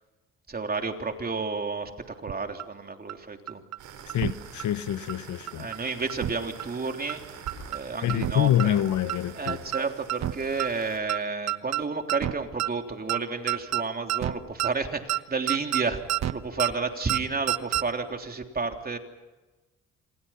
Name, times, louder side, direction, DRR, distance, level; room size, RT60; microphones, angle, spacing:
voice 1, 0.5-3.6 5.5-7.2 7.7-8.8 9.4-16.0 16.3-19.0, right 4 dB, 30° right, 3.4 m, -31 dB
sound 1, 2.3-2.4 2.6-2.7 3.1-3.2 3.5-3.8 4.1-4.3 4.6-4.7 5.1-5.2 5.5-5.8 6.1-6.3 6.6-6.7 7.1-7.2 7.5-7.8 8.1-8.3 8.6-8.7 9.1-9.2 9.5-9.8 10.1-10.3 10.6-10.7 11.1-11.2 11.5-11.8 12.1-12.3 12.6-12.7 13.1-13.2 13.5-13.8 14.1-14.3 14.6-14.7 15.1-15.2 15.5-15.8 16.1-16.3 16.6-16.7 17.1-17.2 17.5-17.8, right 13 dB, 60° right, 1.2 m, -28 dB
sound 2, 3.8-11.0, right 7 dB, 85° right, 5.9 m, -45 dB
voice 2, 4.1-5.7 8.0-9.6, left 12 dB, 75° left, 1.1 m, -26 dB
27.5 x 27.0 x 5.9 m
cardioid pair, 90°, 30 cm